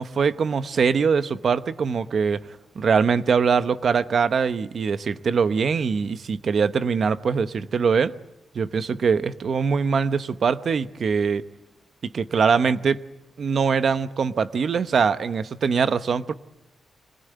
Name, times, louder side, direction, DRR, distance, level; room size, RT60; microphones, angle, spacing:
voice 1, 0.0-8.1 8.5-11.4 12.0-13.0 13.4-16.3, right 5 dB, 50° right, 12 dB, 0.9 m, -22 dB
25.0 x 20.0 x 9.3 m, 0.94 s
wide cardioid pair, 175°, 0 cm